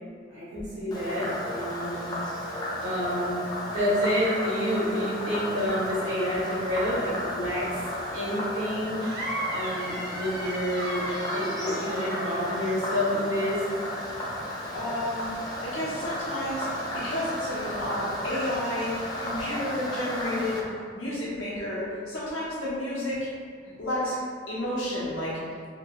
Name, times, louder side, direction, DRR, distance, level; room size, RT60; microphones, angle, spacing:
voice 1, 0.3-2.1 2.4-3.4 3.7-7.7 8.1-9.0 9.5-11.0 11.3-13.6, equal, 85° right, -9 dB, 1.3 m, -29 dB
Frog, 0.9-20.6, left 1 dB, 20° left, 0.4 m, -34 dB
sound 1, 9.0-13.4, right 1 dB, 55° right, 0.6 m, -36 dB
voice 2, 14.7-15.3 15.6-16.7 16.9-20.6 20.9-23.2 23.8-24.2 24.5-25.3, left 1 dB, 85° left, -8 dB, 0.9 m, -31 dB
3.0 x 2.8 x 2.3 m, 2.2 s
head